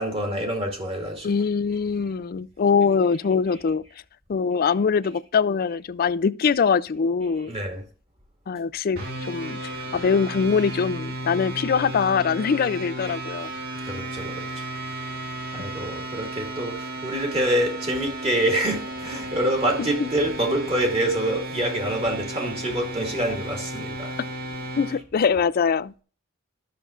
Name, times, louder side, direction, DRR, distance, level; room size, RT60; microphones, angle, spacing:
voice 1, 0.0-1.3 7.5-7.8 13.9-14.7 15.5-24.2, right 1 dB, 25° right, 2.3 m, -26 dB
voice 2, 1.2-3.8 4.3-7.5 8.5-13.5 19.8-20.1 24.8-25.9, left 5 dB, 45° left, 0.4 m, -23 dB
sound 1, 9.0-25.0, right 1 dB, 45° right, 1.9 m, -34 dB
13.0 x 6.7 x 2.5 m
head